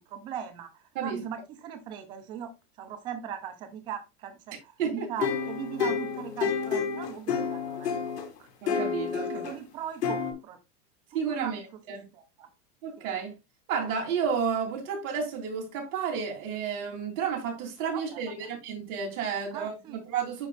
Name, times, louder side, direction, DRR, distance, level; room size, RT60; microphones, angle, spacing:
voice 1, 0.1-0.7 1.0-2.5 2.8-8.1 9.2-10.6 11.3-11.6 12.1-12.5 13.0-13.1 17.9-18.5 19.5-20.0, right 8 dB, 10° right, 0.3 m, -39 dB
sound 1, 5.2-8.2 8.7-9.5 10.0-10.3, left 6 dB, 85° left, 2.3 m, -29 dB
voice 2, 8.6-9.5 11.1-12.1 12.8-13.3 13.7-20.5, right 6 dB, 60° right, 3.4 m, -31 dB
10.5 x 4.4 x 2.4 m
supercardioid pair, 140°, 47 cm